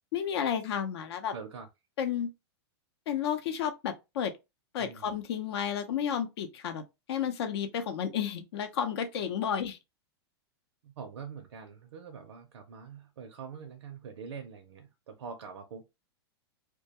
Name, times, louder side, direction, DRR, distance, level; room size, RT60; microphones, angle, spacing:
voice 1, 0.1-1.3 2.0-2.3 3.1-4.3 4.7-6.8 7.1-9.8, left 8 dB, 70° left, 0.6 m, -32 dB
voice 2, 1.3-1.7 4.8-5.1 10.8-15.9, right 6 dB, 85° right, 0.5 m, -44 dB
2.3 x 2.2 x 2.8 m
hypercardioid pair, 135°, 14 cm